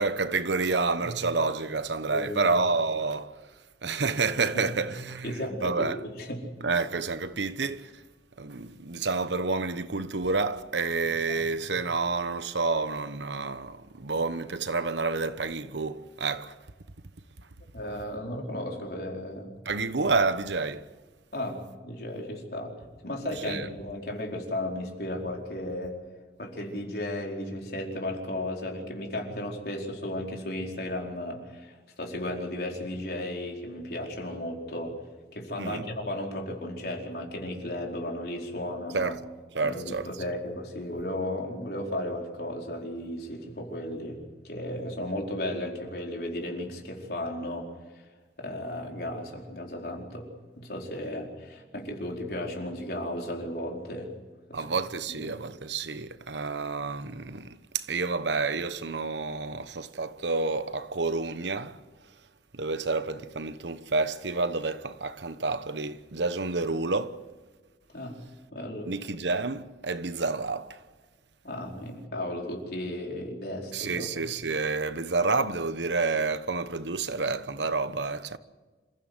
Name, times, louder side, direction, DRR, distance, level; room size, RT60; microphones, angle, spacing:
voice 1, 0.0-3.3 3.8-6.0 6.6-8.0 8.4-16.6 19.6-20.8 23.4-23.7 35.6-35.8 38.9-39.2 39.5-40.1 54.5-61.8 62.5-67.2 68.9-70.8 73.7-78.4, right 3 dB, 85° right, 1.1 m, -29 dB
voice 2, 2.1-2.6 5.2-6.5 11.3-11.4 17.7-19.5 21.3-22.7 23.0-26.0 26.4-35.0 35.3-39.2 39.6-44.2 44.4-48.0 48.4-50.3 50.6-54.1 54.5-54.6 55.1-55.3 67.9-68.2 68.5-68.9 71.4-74.1, left 1 dB, 60° left, 4.6 m, -35 dB
27.5 x 15.0 x 8.0 m
head